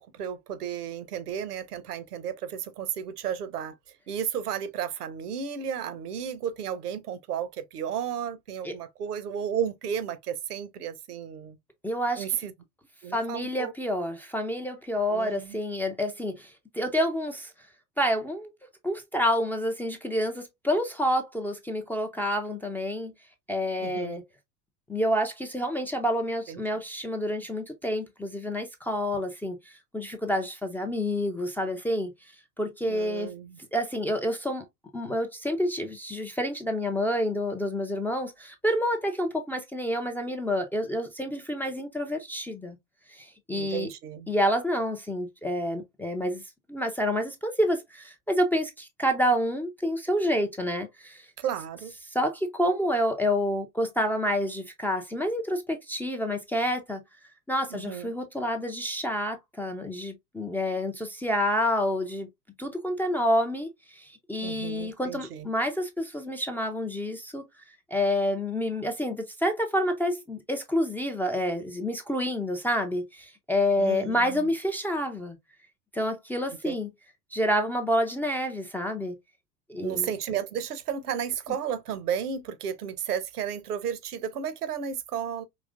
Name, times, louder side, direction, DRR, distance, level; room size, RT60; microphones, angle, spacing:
voice 1, 0.0-3.8 4.1-11.6 12.2-12.5 13.0-13.7 15.1-15.6 23.8-24.2 26.5-26.6 32.9-33.6 43.5-44.3 51.4-51.9 57.7-58.1 64.4-65.5 73.8-74.5 76.6-76.8 79.8-85.4, right 8 dB, 70° right, 0.9 m, -33 dB
voice 2, 11.8-12.2 13.1-17.5 18.0-18.5 18.8-23.1 23.5-24.2 24.9-32.1 32.6-33.3 33.7-34.6 34.9-42.8 43.1-43.9 44.3-46.4 46.7-51.3 52.1-57.0 57.5-62.3 62.6-67.4 67.9-75.4 75.9-76.9 77.3-79.2 79.7-80.1, equal, 5° left, 0.4 m, -28 dB
5.0 x 3.1 x 2.4 m
figure-of-eight pair, 80°, 47 cm